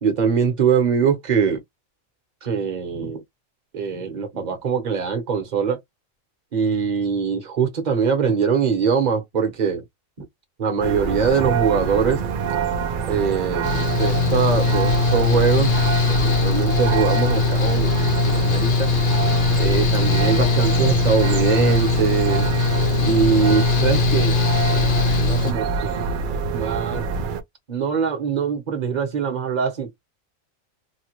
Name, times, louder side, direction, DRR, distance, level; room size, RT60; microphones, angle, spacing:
voice 1, 0.0-1.6 2.4-3.2 3.7-5.8 6.5-9.8 10.6-12.2 13.1-15.7 16.1-18.9 19.6-22.5 23.0-24.4 24.6-27.1 27.7-30.0, right 6 dB, 35° right, 1.0 m, -22 dB
sound 1, 10.8-27.4, right 5 dB, 75° right, 0.4 m, -26 dB
Mechanical fan, 13.6-25.5, left 5 dB, 55° left, 0.8 m, -21 dB
3.2 x 2.3 x 2.9 m
omnidirectional pair, 1.4 m